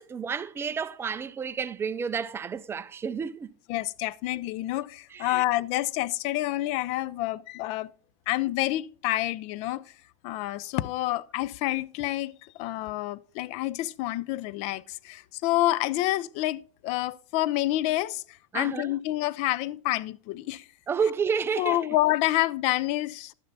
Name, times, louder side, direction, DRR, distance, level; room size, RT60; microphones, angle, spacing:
voice 1, 0.0-3.5 5.1-5.4 18.5-19.0 20.9-21.8, right 6 dB, 15° right, 0.4 m, -30 dB
voice 2, 3.7-7.9 8.3-9.8 10.2-12.3 12.6-18.2 18.5-20.6 21.6-23.3, left 16 dB, 40° left, 0.5 m, -28 dB
12.0 x 6.5 x 4.0 m
supercardioid pair, 130°, 16 cm